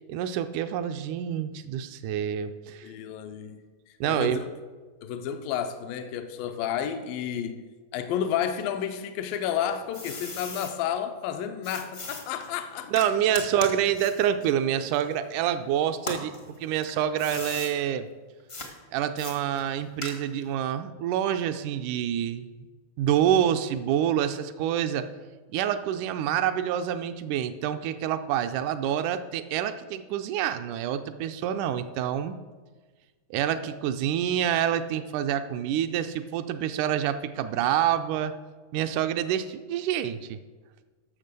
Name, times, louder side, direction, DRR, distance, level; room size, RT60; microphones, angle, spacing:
voice 1, 0.1-2.9 4.0-4.4 12.9-16.3 16.6-18.1 18.9-22.5 23.0-25.1 25.5-32.4 33.3-38.3 38.7-40.4, right 10 dB, 80° right, 1.8 m, -27 dB
voice 2, 2.8-3.6 4.1-4.5 5.0-7.6 7.9-13.1, left 9 dB, 80° left, 2.4 m, -31 dB
sound 1, 9.3-10.7 11.6-15.5 15.9-17.7 18.5-18.7 19.2-20.5, left 2 dB, 55° left, 0.6 m, -39 dB
12.5 x 6.8 x 6.7 m
omnidirectional pair, 4.1 m